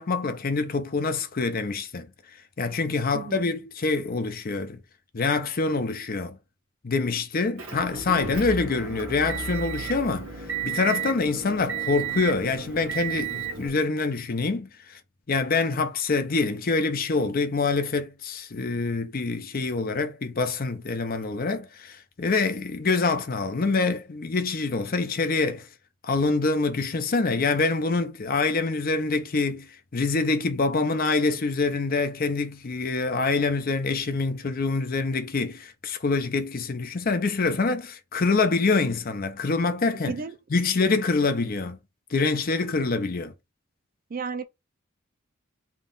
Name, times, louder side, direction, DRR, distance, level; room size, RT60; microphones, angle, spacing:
voice 1, 0.0-2.1 2.6-4.8 5.1-6.4 6.8-10.3 10.6-15.0 15.3-25.7 26.0-40.2 40.5-41.8 42.1-43.3, left 3 dB, 45° left, 0.6 m, -25 dB
Motor vehicle (road) / Engine, 7.6-13.7, right 6 dB, 65° right, 1.2 m, -33 dB
voice 2, 40.0-40.4 44.1-44.4, right 5 dB, 45° right, 0.4 m, -33 dB
3.6 x 2.4 x 3.8 m
head